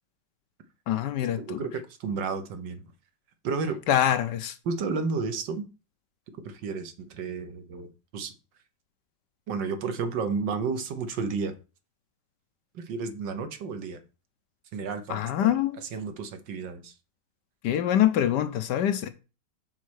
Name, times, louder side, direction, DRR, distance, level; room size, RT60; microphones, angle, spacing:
voice 1, 0.9-1.6 3.9-4.5 15.1-15.8 17.6-19.1, left 11 dB, 70° left, 1.3 m, -25 dB
voice 2, 1.4-2.9 3.4-3.8 4.6-5.6 6.4-8.3 9.5-11.5 12.7-14.0 14.7-15.5 15.9-16.9, right 4 dB, 80° right, 1.7 m, -32 dB
6.4 x 4.2 x 6.4 m
omnidirectional pair, 2.0 m